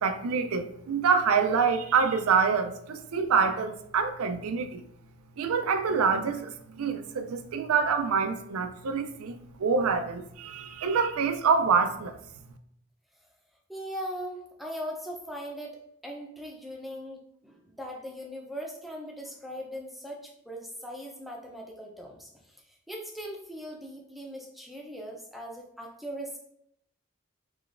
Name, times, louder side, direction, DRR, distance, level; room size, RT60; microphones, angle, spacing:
voice 1, 0.0-4.8 5.4-12.2, right 5 dB, 85° right, 0.4 m, -26 dB
voice 2, 13.7-15.8 16.0-26.4, equal, ahead, 0.5 m, -40 dB
4.8 x 3.1 x 2.5 m
head